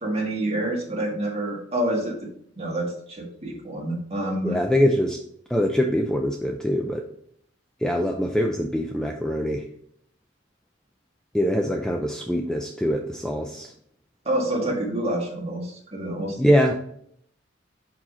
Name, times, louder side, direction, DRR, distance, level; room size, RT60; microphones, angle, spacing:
voice 1, 0.0-2.2 2.6-4.6 14.3-16.4, right 1 dB, 30° right, -2 dB, 1.8 m, -27 dB
voice 2, 4.4-5.2 5.5-7.1 7.8-9.7 11.3-13.7 16.4-16.8, equal, 5° left, 2 dB, 0.4 m, -23 dB
5.6 x 4.8 x 3.7 m, 0.67 s
head